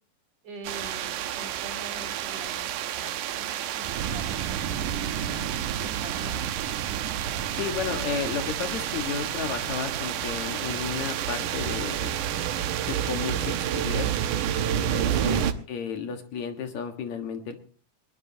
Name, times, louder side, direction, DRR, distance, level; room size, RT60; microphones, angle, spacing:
voice 1, 0.4-2.7 2.9-6.5, right 1 dB, 50° right, 5 dB, 4.8 m, -45 dB
sound 1, 0.6-15.5, right 10 dB, 75° right, 2.5 m, -29 dB
voice 2, 7.5-12.1 12.9-13.5 13.8-14.1 14.7-17.6, left 6 dB, 65° left, 6 dB, 2.8 m, -32 dB
21.5 x 20.0 x 2.8 m, 0.39 s
omnidirectional pair, 3.7 m